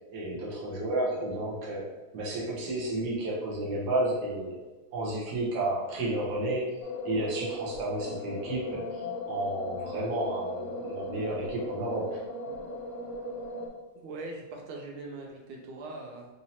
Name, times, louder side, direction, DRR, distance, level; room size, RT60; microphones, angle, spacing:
voice 1, 0.1-1.9 2.1-4.6 4.9-12.2, right 1 dB, 60° right, -5 dB, 1.5 m, -32 dB
sound 1, 6.8-13.7, left 2 dB, 80° left, 1.4 m, -37 dB
voice 2, 13.9-16.3, right 2 dB, 90° right, 0 dB, 1.5 m, -41 dB
4.3 x 2.8 x 2.8 m, 1.2 s
omnidirectional pair, 2.2 m